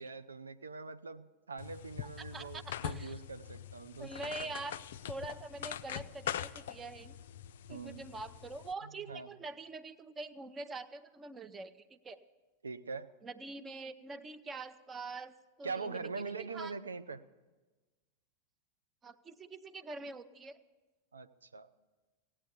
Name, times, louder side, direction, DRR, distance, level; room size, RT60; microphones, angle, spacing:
voice 1, 0.0-4.5 7.7-8.1 8.8-9.3 12.6-13.1 15.6-17.2 21.1-21.7, right 4 dB, 75° right, 10 dB, 0.6 m, -43 dB
sound 1, 1.6-8.7, left 10 dB, 55° left, 0.4 m, -43 dB
voice 2, 2.2-3.2 4.0-4.8 5.1-7.2 7.7-12.2 13.2-16.7 19.0-20.6, right 3 dB, 20° right, 12 dB, 0.7 m, -45 dB
17.0 x 8.8 x 8.2 m, 1.3 s
figure-of-eight pair, 90°, 0 cm